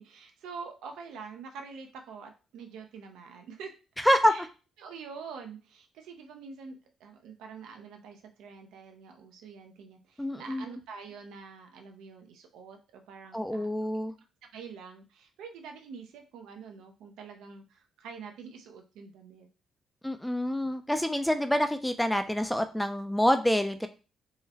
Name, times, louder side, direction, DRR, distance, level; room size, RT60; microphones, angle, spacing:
voice 1, 0.0-3.7 4.2-4.5 4.8-13.7 14.5-19.5, right 5 dB, 85° right, 4 dB, 0.6 m, -46 dB
voice 2, 4.0-4.5 10.2-10.7 13.3-14.1 20.0-23.9, equal, 5° left, 9 dB, 0.4 m, -26 dB
3.7 x 2.1 x 2.8 m, 0.33 s
cardioid pair, 90°, 0 cm